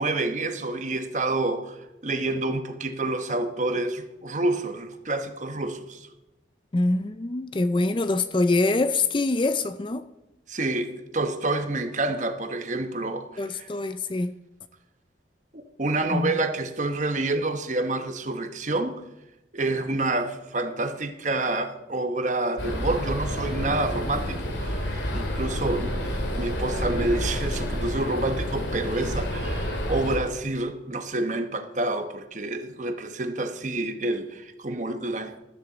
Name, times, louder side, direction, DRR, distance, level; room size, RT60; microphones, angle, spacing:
voice 1, 0.0-6.1 10.5-13.7 15.5-19.0 19.5-35.4, right 2 dB, 40° right, 1.0 m, -28 dB
voice 2, 6.7-10.1 13.4-14.3 16.1-16.3, left 2 dB, 25° left, 0.4 m, -24 dB
sound 1, 22.6-30.2, equal, 80° left, 2.5 m, -29 dB
14.0 x 13.0 x 4.0 m
head